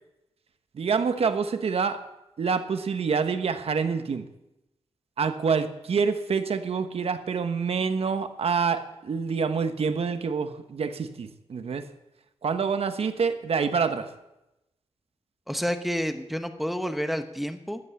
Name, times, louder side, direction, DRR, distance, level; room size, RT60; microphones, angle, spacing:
voice 1, 0.7-2.0 2.4-4.3 5.2-11.9 12.4-14.1, right 5 dB, 60° right, 9 dB, 1.2 m, -27 dB
voice 2, 15.5-17.8, equal, ahead, 7 dB, 1.1 m, -29 dB
13.0 x 8.4 x 8.3 m, 0.93 s
cardioid pair, 95°, 11 cm